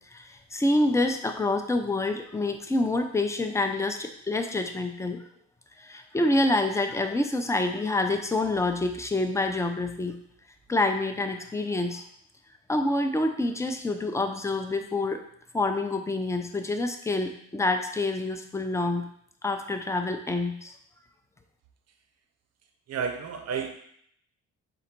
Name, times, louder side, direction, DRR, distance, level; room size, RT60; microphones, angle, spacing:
voice 1, 0.1-5.2 5.8-10.1 10.7-12.0 12.7-15.2 15.5-19.0 19.4-20.7, left 2 dB, 10° left, 5 dB, 0.4 m, -27 dB
voice 2, 22.9-23.8, right 6 dB, 55° right, 5 dB, 0.7 m, -31 dB
3.9 x 2.5 x 4.4 m, 0.66 s
cardioid pair, 90°, 30 cm